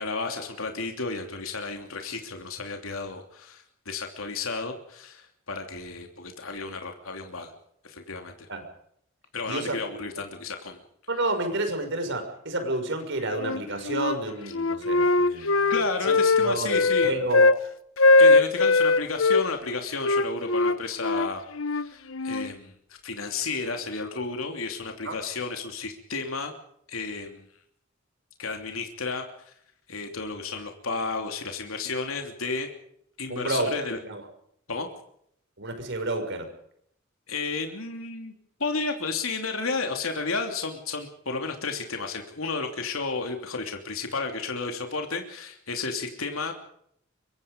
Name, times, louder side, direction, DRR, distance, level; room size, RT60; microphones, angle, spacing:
voice 1, 0.0-7.5 7.8-8.5 9.3-10.8 15.3-17.1 18.2-21.4 21.7-26.5 26.9-27.5 28.4-29.5 29.9-32.7 33.2-34.0 34.7-34.9 37.3-38.3 38.6-46.5, left 4 dB, 85° left, 4 dB, 3.0 m, -32 dB
voice 2, 9.5-10.0 11.1-15.7 16.0-17.5 25.0-25.2 33.3-34.2 35.6-36.5, right 2 dB, 60° right, 6 dB, 6.3 m, -30 dB
Wind instrument woodwind instrument, 13.4-14.2 14.5-17.6 18.0-19.4 20.0-22.5, left 3 dB, 70° left, 0.9 m, -21 dB
24.5 x 24.0 x 5.3 m, 0.69 s
head